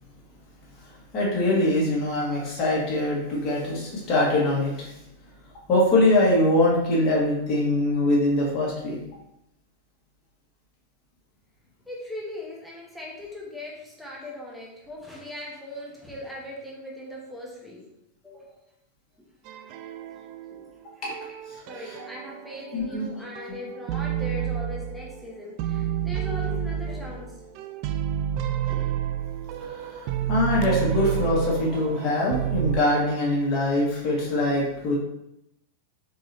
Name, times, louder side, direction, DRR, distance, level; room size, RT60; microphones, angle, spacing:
voice 1, 0.9-5.0 5.7-9.0 21.0-21.1 21.5-22.0 22.7-23.1 29.6-34.9, left 1 dB, 30° left, -5 dB, 1.7 m, -23 dB
voice 2, 11.9-17.8 18.2-18.5 21.6-27.3 28.7-28.8, left 1 dB, ahead, -5 dB, 1.1 m, -39 dB
sound 1, 19.5-20.7 21.1-23.0 23.4-25.3 25.6-32.8, right 10 dB, 45° right, 0.3 m, -30 dB
4.6 x 4.0 x 2.7 m, 0.84 s
figure-of-eight pair, 90°, 0 cm